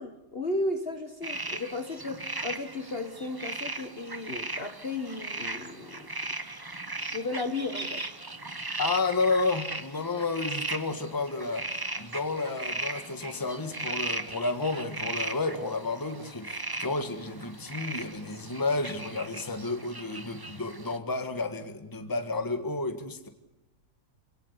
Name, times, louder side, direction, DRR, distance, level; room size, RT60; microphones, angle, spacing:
voice 1, 0.0-6.1 7.1-8.0, left 2 dB, 35° left, 7 dB, 1.6 m, -34 dB
sound 1, 1.2-21.0, right 2 dB, 15° right, 0.9 m, -37 dB
voice 2, 8.8-23.3, left 3 dB, 10° left, 8 dB, 1.6 m, -31 dB
27.5 x 18.0 x 8.2 m, 0.98 s
omnidirectional pair, 1.8 m